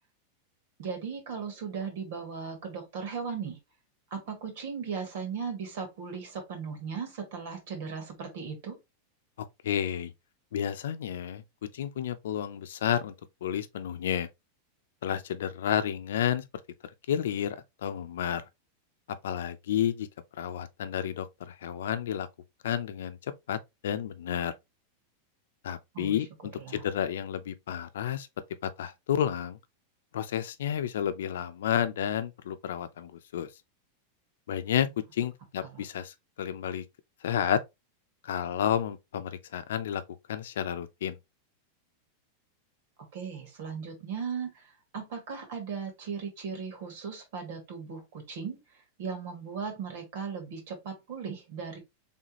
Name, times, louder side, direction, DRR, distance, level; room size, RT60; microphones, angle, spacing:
voice 1, 0.8-3.6 4.1-8.8 25.9-26.3 26.5-26.8 35.6-35.8 43.1-51.8, right 6 dB, 55° right, 2.0 m, -37 dB
voice 2, 9.6-10.1 10.5-11.4 11.7-13.1 13.4-14.3 15.0-16.4 17.1-18.4 19.2-20.1 20.4-22.3 22.6-23.2 23.5-24.5 25.6-28.3 28.6-29.6 30.1-33.5 34.5-34.9 35.1-36.8 37.2-37.6 38.2-40.0 40.3-41.2, left 9 dB, 85° left, 0.6 m, -31 dB
4.1 x 3.5 x 3.0 m
supercardioid pair, 175°, 0 cm